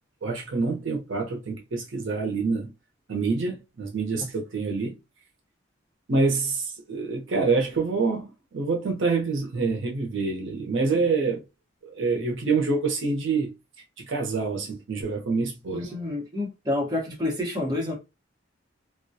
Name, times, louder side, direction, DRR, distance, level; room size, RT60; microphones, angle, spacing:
voice 1, 0.2-2.7 3.1-5.0 6.1-11.4 11.9-13.5 14.1-15.9, right 4 dB, 70° right, 0.6 m, -26 dB
voice 2, 15.7-17.9, left 2 dB, 20° right, 0.8 m, -28 dB
2.3 x 2.1 x 2.6 m
head